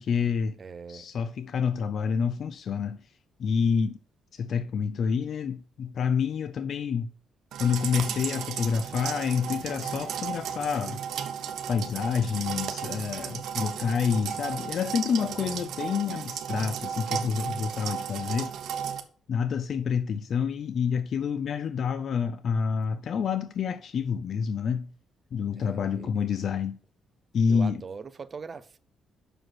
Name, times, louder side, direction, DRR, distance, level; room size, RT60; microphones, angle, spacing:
voice 1, 0.0-0.6 0.9-3.0 3.4-4.0 4.3-7.1 7.6-11.0 11.7-18.5 19.3-24.9 25.3-26.8 27.3-27.8, left 6 dB, 60° left, 0.4 m, -28 dB
voice 2, 0.6-1.1 15.2-15.6 25.5-26.1 27.5-28.8, right 5 dB, 40° right, 0.6 m, -42 dB
sound 1, 7.5-19.0, right 8 dB, 75° right, 0.9 m, -34 dB
6.2 x 4.9 x 6.0 m
cardioid pair, 90°, 0 cm